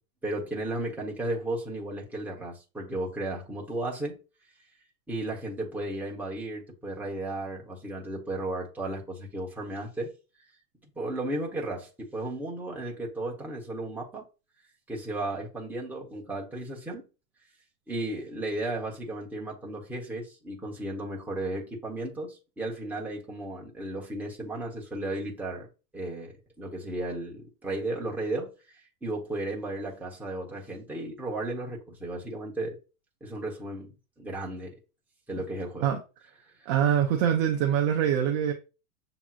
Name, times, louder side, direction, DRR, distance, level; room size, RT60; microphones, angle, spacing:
voice 1, 0.2-4.2 5.1-10.1 11.0-14.2 14.9-17.0 17.9-25.7 25.9-32.8 33.2-33.9 34.2-34.7 35.3-35.9, right 2 dB, 5° right, 0.9 m, -34 dB
voice 2, 36.7-38.5, right 9 dB, 30° right, 0.5 m, -24 dB
7.1 x 2.9 x 2.4 m
supercardioid pair, 140°, 45 cm